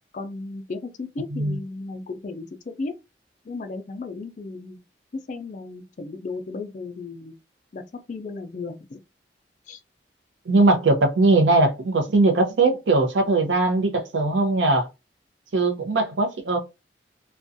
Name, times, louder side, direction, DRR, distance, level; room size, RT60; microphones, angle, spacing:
voice 1, 0.1-2.9 3.4-4.8 5.1-7.3 7.7-7.8 8.1-9.0 9.7-9.8, left 3 dB, 40° left, 0.3 m, -35 dB
voice 2, 10.5-14.9 15.5-16.6, right 2 dB, 90° right, 0.6 m, -20 dB
2.4 x 2.2 x 2.6 m
head